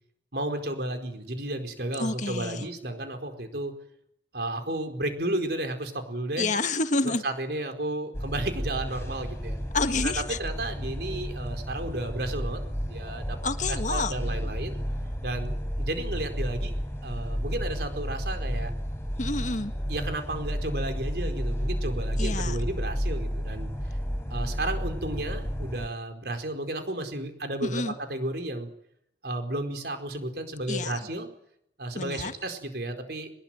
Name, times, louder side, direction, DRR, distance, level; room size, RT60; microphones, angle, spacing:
voice 1, 0.3-3.7 4.3-6.5 7.0-9.6 10.0-10.1 10.4-13.4 13.7-14.8 15.2-16.7 17.0-18.7 19.9-23.7 24.3-28.7 29.2-31.3 31.8-33.3, right 1 dB, 60° right, 6 dB, 4.7 m, -33 dB
voice 2, 2.0-2.7 6.4-7.2 9.7-10.4 13.4-14.1 19.2-19.7 22.2-22.6 27.6-27.9 30.7-31.0 31.9-32.3, left 3 dB, 45° left, 9 dB, 1.7 m, -28 dB
sound 1, 8.1-25.9, equal, 15° left, 5.2 m, -32 dB
22.5 x 21.0 x 9.2 m, 0.73 s
head